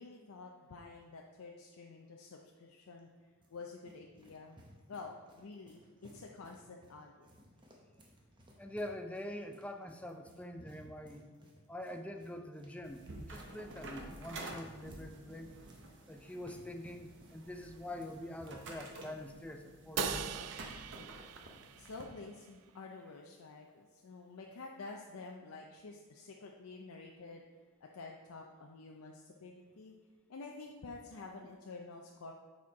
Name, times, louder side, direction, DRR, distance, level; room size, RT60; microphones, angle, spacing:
voice 1, 0.0-3.1 3.5-4.6 4.9-7.3 21.8-27.4 27.8-29.9 30.3-32.3, left 3 dB, 80° left, 1 dB, 0.6 m, -49 dB
sound 1, 3.0-19.1, equal, 20° right, 0.8 m, -61 dB
voice 2, 8.6-11.3 11.7-15.5 16.1-20.2, left 1 dB, 5° left, 5 dB, 0.4 m, -45 dB
sound 2, 12.8-22.0, right 1 dB, 55° right, 0.9 m, -46 dB
Crash cymbal, 20.0-22.3, right 13 dB, 90° right, 0.3 m, -42 dB
7.4 x 4.3 x 4.6 m, 1.4 s
head